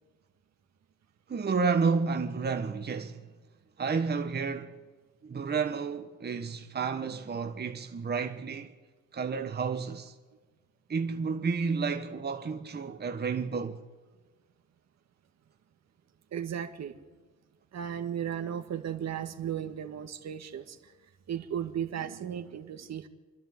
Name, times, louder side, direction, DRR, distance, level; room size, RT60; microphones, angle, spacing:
voice 1, 1.3-3.2 3.8-4.7 5.2-8.7 9.1-10.1 10.9-13.8, right 5 dB, 35° right, 1.4 m, -31 dB
voice 2, 16.3-16.9 17.7-20.8 21.3-23.1, right 9 dB, 60° right, 1.8 m, -35 dB
28.0 x 11.0 x 9.4 m
cardioid pair, 90°, 30 cm